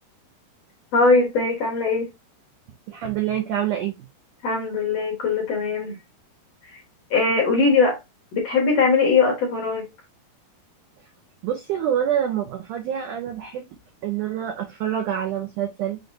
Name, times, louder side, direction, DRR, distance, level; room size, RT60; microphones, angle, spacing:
voice 1, 0.9-2.1 4.4-6.0 7.1-8.0 8.3-9.9, left 4 dB, 55° left, 2.0 m, -20 dB
voice 2, 2.9-4.0 11.4-13.7 14.0-16.0, right 10 dB, 80° right, 1.8 m, -26 dB
6.2 x 3.3 x 2.6 m
omnidirectional pair, 4.6 m